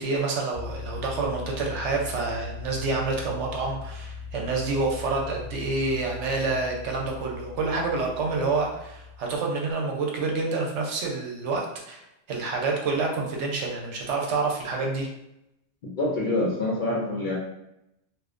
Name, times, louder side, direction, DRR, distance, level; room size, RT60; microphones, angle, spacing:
voice 1, 0.0-12.0 12.3-15.1, right 3 dB, 75° right, 0 dB, 0.9 m, -28 dB
sound 1, 0.5-9.2, left 5 dB, 15° right, 0.5 m, -39 dB
voice 2, 15.8-17.3, left 2 dB, 55° left, -5 dB, 0.6 m, -26 dB
2.5 x 2.0 x 2.4 m, 0.85 s
omnidirectional pair, 1.2 m